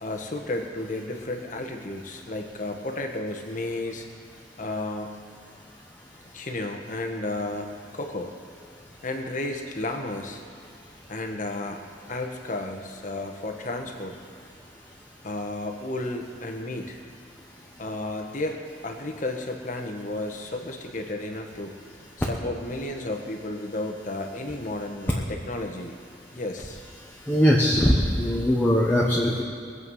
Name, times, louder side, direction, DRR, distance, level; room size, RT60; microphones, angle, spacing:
voice 1, 0.0-4.1 4.6-5.2 6.3-8.3 9.0-10.4 11.1-11.8 12.1-14.1 15.2-17.0 17.8-21.7 22.2-26.0 26.3-26.8, left 2 dB, 45° left, 4 dB, 1.3 m, -32 dB
voice 2, 27.3-29.4, equal, 10° left, -4 dB, 1.2 m, -21 dB
21.5 x 8.2 x 5.6 m, 2.3 s
head